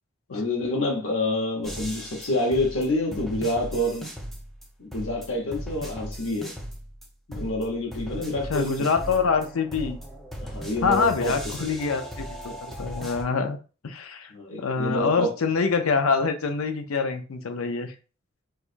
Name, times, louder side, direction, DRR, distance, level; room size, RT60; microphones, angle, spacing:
voice 1, 0.3-4.1 4.8-6.5 7.3-8.7 10.4-11.3 12.5-12.6 14.3-15.3, left 1 dB, 70° left, 1.0 m, -27 dB
sound 1, 1.6-4.6 4.9-7.0 7.3-13.2, equal, ahead, 0.6 m, -37 dB
voice 2, 8.5-10.0 10.8-12.3 12.8-13.6 13.8-14.3 14.6-17.9, left 5 dB, 90° left, 0.6 m, -25 dB
4.7 x 2.3 x 2.5 m
head